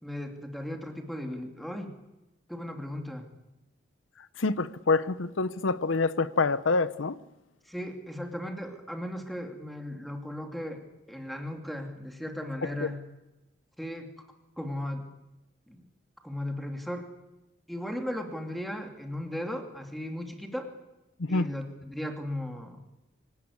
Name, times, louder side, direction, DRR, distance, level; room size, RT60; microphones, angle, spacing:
voice 1, 0.0-1.9 2.5-3.3 7.7-13.0 13.8-14.1 14.6-15.1 15.7-15.8 16.2-17.1 17.7-20.7 21.3-22.8, left 1 dB, ahead, 2.6 m, -36 dB
voice 2, 4.4-7.2 12.8-12.9 21.2-21.5, left 3 dB, 85° left, 0.8 m, -26 dB
25.0 x 18.5 x 9.7 m
head